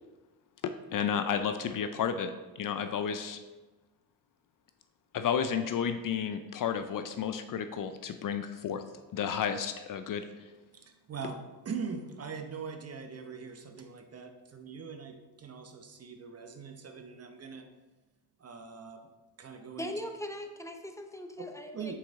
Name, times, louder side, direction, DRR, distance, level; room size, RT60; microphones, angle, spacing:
voice 1, 0.6-2.3 2.6-3.4 5.1-8.8 9.1-10.2, left 7 dB, 50° left, 9 dB, 0.5 m, -32 dB
voice 2, 10.7-11.4 11.6-17.7 18.4-19.1 19.4-19.9 21.4-21.5 21.7-21.9, right 5 dB, 35° right, 6 dB, 0.8 m, -42 dB
voice 3, 19.8-21.9, left 1 dB, 5° left, 5 dB, 0.7 m, -40 dB
5.9 x 4.8 x 3.6 m, 1.2 s
supercardioid pair, 70°, 44 cm